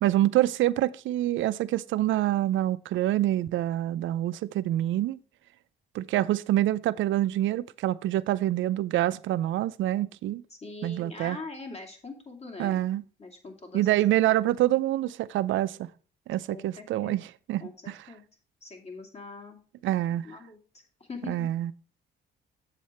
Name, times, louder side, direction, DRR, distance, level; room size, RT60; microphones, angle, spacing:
voice 1, 0.0-5.2 5.9-10.4 10.8-11.4 12.6-13.0 13.7-15.9 16.3-18.0 19.8-20.3 21.3-21.7, right 14 dB, 75° right, 0.5 m, -26 dB
voice 2, 10.5-12.8 13.2-13.9 16.5-17.2 17.6-18.2 18.6-19.6 20.2-20.6 21.0-21.5, left 3 dB, 30° left, 2.3 m, -42 dB
7.6 x 7.4 x 4.2 m
cardioid pair, 90°, 20 cm